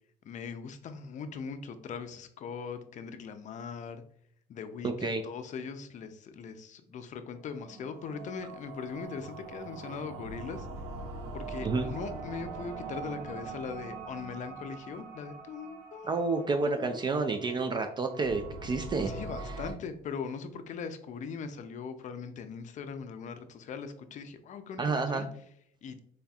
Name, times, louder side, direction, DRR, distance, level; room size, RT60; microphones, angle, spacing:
voice 1, 0.2-4.0 4.5-10.7 11.3-16.1 16.7-17.3 19.0-25.3 25.8-26.0, left 6 dB, 45° left, 9 dB, 0.5 m, -40 dB
voice 2, 4.8-5.2 11.6-11.9 16.1-19.1 24.8-25.3, right 3 dB, 25° right, 5 dB, 0.3 m, -29 dB
sound 1, 7.5-19.7, right 3 dB, 85° right, 0.7 m, -43 dB
4.0 x 3.4 x 2.3 m, 0.66 s
cardioid pair, 110°, 17 cm